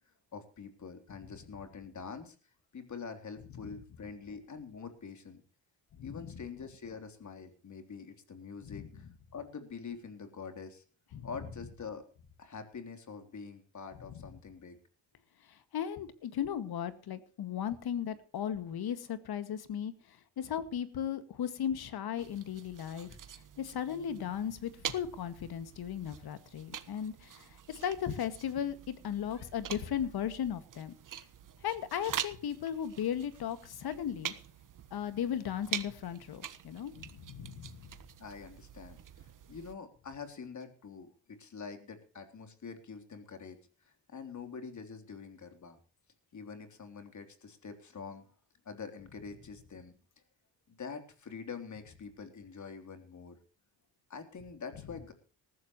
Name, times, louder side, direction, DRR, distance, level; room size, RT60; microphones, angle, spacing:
voice 1, 0.3-2.4 2.7-5.4 6.0-9.1 9.3-10.8 11.2-12.0 12.4-14.8 38.2-43.6 44.1-45.8 46.3-48.2 48.7-49.9 50.7-53.4 54.1-55.1, left 5 dB, 45° left, 7 dB, 3.6 m, -45 dB
voice 2, 6.0-6.4 8.6-8.9 11.1-11.3 15.5-30.9 31.6-34.3 34.9-37.9, left 9 dB, 65° left, 12 dB, 2.0 m, -36 dB
sound 1, 22.2-39.7, right 9 dB, 50° right, 1.5 m, -45 dB
19.5 x 14.5 x 3.1 m, 0.38 s
cardioid pair, 90°, 40 cm